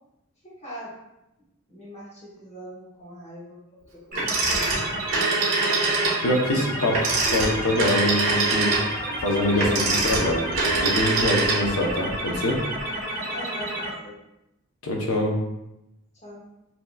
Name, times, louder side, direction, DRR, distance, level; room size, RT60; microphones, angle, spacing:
voice 1, 0.4-0.9 1.7-3.6 3.9-4.7 13.3-14.2 16.2-16.5, equal, 30° left, -7 dB, 1.2 m, -41 dB
sound 1, 4.1-13.9, right 1 dB, 40° right, 1.4 m, -31 dB
Telephone, 4.1-6.2 6.9-11.9, right 3 dB, 60° right, 1.4 m, -24 dB
voice 2, 6.2-12.6 14.8-15.4, left 1 dB, 80° left, 0 dB, 0.9 m, -25 dB
5.8 x 2.9 x 2.3 m, 0.90 s
head